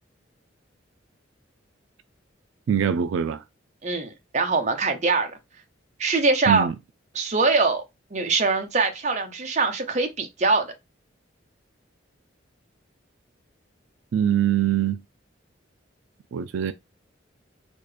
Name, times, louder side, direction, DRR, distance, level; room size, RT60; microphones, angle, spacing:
voice 1, 2.7-3.4 6.5-6.7 14.1-15.0 16.3-16.7, right 9 dB, 85° right, 0.3 m, -23 dB
voice 2, 3.8-5.3 6.0-6.7 7.1-7.8 8.1-10.7, right 3 dB, 35° right, 0.7 m, -23 dB
4.2 x 2.2 x 3.2 m
head